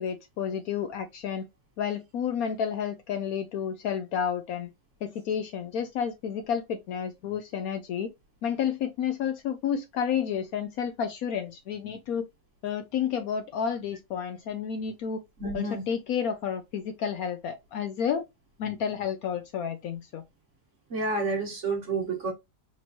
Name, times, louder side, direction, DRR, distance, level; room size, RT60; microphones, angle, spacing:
voice 1, 0.0-1.5 1.8-4.7 5.0-8.1 8.4-12.2 12.6-15.2 15.5-18.2 18.6-20.2, left 8 dB, 70° left, 0.9 m, -31 dB
voice 2, 15.4-15.8 20.9-22.3, right 3 dB, 45° right, 1.6 m, -29 dB
4.3 x 3.0 x 2.5 m
omnidirectional pair, 1.8 m